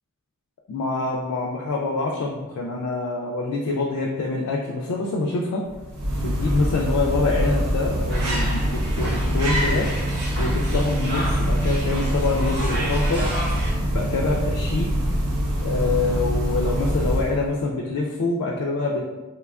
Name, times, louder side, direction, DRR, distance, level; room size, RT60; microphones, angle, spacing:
voice 1, 0.7-5.6 6.2-9.9 10.4-13.3 13.9-14.9 15.6-19.0, left 3 dB, 80° left, -1 dB, 0.3 m, -25 dB
sound 1, 5.7-17.5, equal, 90° right, 0.6 m, -24 dB
sound 2, 8.1-13.7, right 1 dB, 50° right, 0.7 m, -33 dB
2.9 x 2.2 x 2.3 m, 1.2 s
head